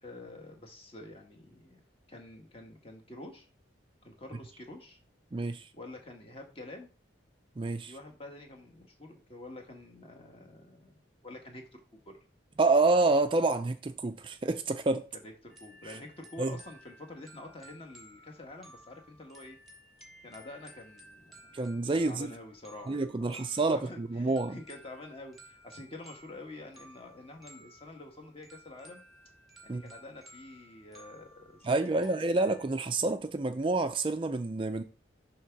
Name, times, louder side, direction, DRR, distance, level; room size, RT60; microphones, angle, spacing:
voice 1, 0.0-1.8 2.1-3.5 4.0-5.0 5.7-6.9 7.9-12.1 15.2-19.6 20.2-21.6 21.9-23.4 23.7-29.0 29.6-32.2, left 2 dB, 30° left, 1.4 m, -48 dB
voice 2, 5.3-5.7 7.6-7.9 12.6-15.1 15.8-16.0 16.4-16.6 21.5-22.3 22.9-24.6 29.7-29.8 31.6-34.8, right 3 dB, 25° right, 0.4 m, -28 dB
sound 1, 15.5-32.7, equal, ahead, 1.7 m, -56 dB
6.1 x 3.4 x 5.8 m
head